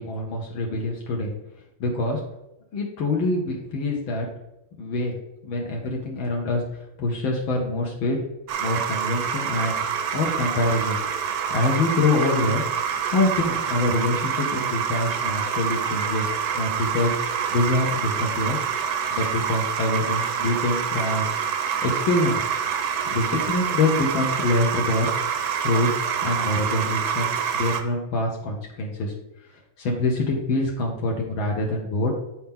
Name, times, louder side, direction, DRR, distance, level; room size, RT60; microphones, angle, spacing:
voice 1, 0.0-1.3 1.8-2.2 2.7-4.3 4.8-5.1 5.4-6.6 7.0-8.2 8.6-11.0 11.5-12.6 13.1-16.3 16.5-18.6 19.1-21.3 21.8-22.5 23.1-25.1 25.6-25.9 26.2-29.1 29.8-32.1, left 2 dB, 75° left, -1 dB, 1.8 m, -25 dB
sound 1, 8.5-27.8, right 7 dB, 65° right, 1.0 m, -26 dB
9.3 x 4.4 x 3.6 m, 0.90 s
omnidirectional pair, 2.2 m